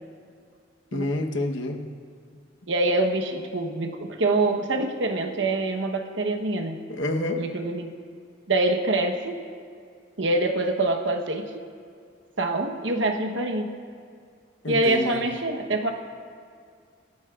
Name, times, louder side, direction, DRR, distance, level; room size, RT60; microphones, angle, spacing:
voice 1, 0.9-1.8 6.9-7.5 14.6-15.3, left 2 dB, 80° left, 3 dB, 1.1 m, -28 dB
voice 2, 2.7-6.8 7.4-7.9 8.5-9.4 10.2-11.7 12.4-13.8 14.7-15.9, right 2 dB, 70° right, 3 dB, 1.1 m, -25 dB
26.5 x 10.5 x 2.5 m, 2.2 s
head